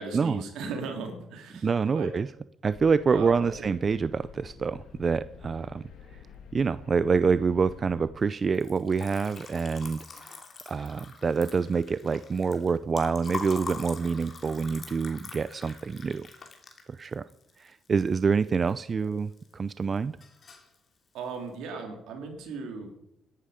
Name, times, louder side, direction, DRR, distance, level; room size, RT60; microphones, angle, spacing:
voice 1, 0.0-2.1 3.1-3.7 19.0-19.1 21.1-22.9, right 4 dB, 80° right, 4 dB, 3.2 m, -37 dB
voice 2, 1.6-2.3 2.6-5.8 6.5-10.4 10.7-16.3 16.9-17.3 17.6-20.2, right 5 dB, 40° right, 15 dB, 0.4 m, -26 dB
sound 1, 2.7-8.1, left 7 dB, 75° left, 2.4 m, -48 dB
Liquid, 8.5-18.7 19.0-19.7 20.0-20.7, left 5 dB, 45° left, 2.8 m, -43 dB
17.5 x 11.5 x 5.1 m, 0.78 s
cardioid pair, 85°, 0 cm